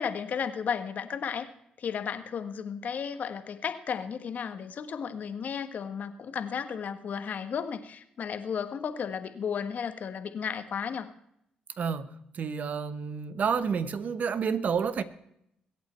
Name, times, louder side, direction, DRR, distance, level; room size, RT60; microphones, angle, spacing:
voice 1, 0.0-1.5 1.8-11.1, left 7 dB, 60° left, 1.4 m, -34 dB
voice 2, 11.8-12.1 12.4-15.0, right 6 dB, 55° right, 1.1 m, -29 dB
22.5 x 8.6 x 4.5 m
supercardioid pair, 60°, 3 cm